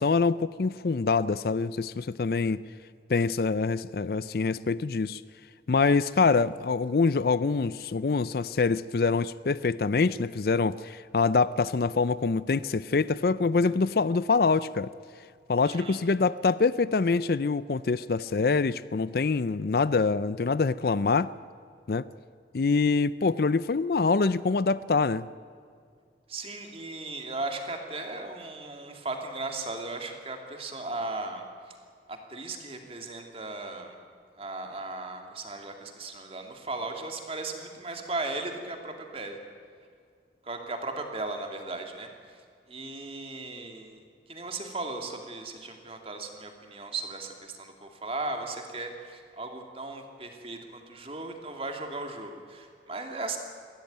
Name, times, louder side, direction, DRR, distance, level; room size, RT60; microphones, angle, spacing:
voice 1, 0.0-2.6 3.1-5.2 5.7-14.9 15.5-21.3 21.9-22.0 22.5-25.2, left 4 dB, 55° left, 0.5 m, -25 dB
voice 2, 15.6-16.0 26.3-31.8 32.1-34.0 34.4-39.4 40.4-42.4 42.7-44.0 44.3-53.4, right 2 dB, 30° right, 2.5 m, -37 dB
22.0 x 16.0 x 9.3 m
head